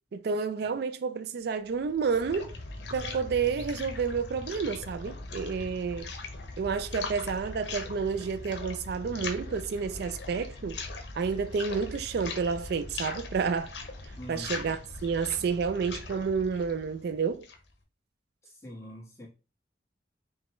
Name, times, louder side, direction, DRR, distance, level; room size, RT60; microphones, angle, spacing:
voice 1, 0.1-2.5 2.9-6.1 6.6-10.8 11.2-13.8 14.3-17.5, right 5 dB, 65° right, 0.4 m, -30 dB
sound 1, 1.7-17.7, left 3 dB, 85° left, 0.7 m, -40 dB
voice 2, 14.2-14.8 18.4-19.3, equal, 15° left, 1.4 m, -44 dB
5.3 x 2.3 x 3.0 m
head